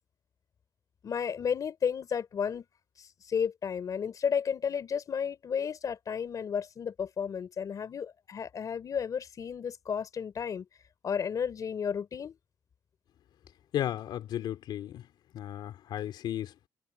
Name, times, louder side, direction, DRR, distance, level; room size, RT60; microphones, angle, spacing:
voice 1, 1.0-2.6 3.0-10.6 11.0-12.3, left 7 dB, 50° left, 3.3 m, -32 dB
voice 2, 13.7-15.1 15.3-16.7, left 11 dB, 80° left, 3.4 m, -34 dB
cardioid pair, 105°, 8 cm